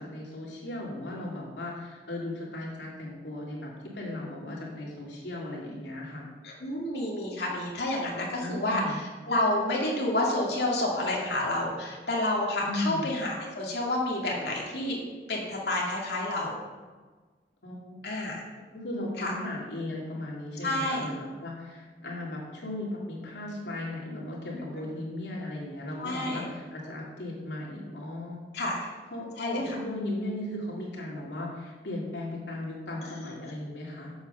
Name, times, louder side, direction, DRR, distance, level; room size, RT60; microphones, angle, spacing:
voice 1, 0.0-6.2 8.4-9.0 12.6-13.1 17.6-18.1 18.7-28.4 29.1-34.1, left 1 dB, 85° left, -4 dB, 2.9 m, -36 dB
voice 2, 6.4-15.0 15.3-16.6 18.0-18.4 19.2-19.3 20.6-21.1 26.0-26.4 28.5-28.9 29.4-29.6 33.1-33.2 33.4-33.5, left 1 dB, 70° left, -3 dB, 2.2 m, -29 dB
8.0 x 7.4 x 5.6 m, 1.4 s
head